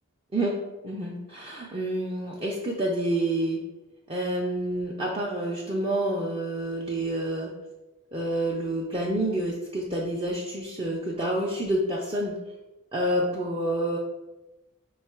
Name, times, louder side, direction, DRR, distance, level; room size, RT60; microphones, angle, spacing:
voice 1, 0.8-3.6 4.1-7.5 8.1-12.4 12.9-14.0, right 1 dB, 25° right, -3 dB, 0.4 m, -28 dB
5.0 x 2.3 x 4.2 m, 1.1 s
head